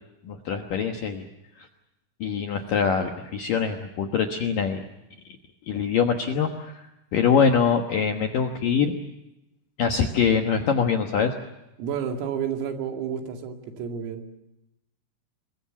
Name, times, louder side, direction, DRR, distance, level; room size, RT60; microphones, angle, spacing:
voice 1, 0.2-1.3 2.2-4.8 5.7-6.8 7.1-8.9 9.8-11.4, left 6 dB, 70° left, 4 dB, 2.1 m, -23 dB
voice 2, 11.8-14.2, right 7 dB, 90° right, 4 dB, 5.1 m, -30 dB
26.5 x 22.0 x 7.3 m, 0.93 s
omnidirectional pair, 5.9 m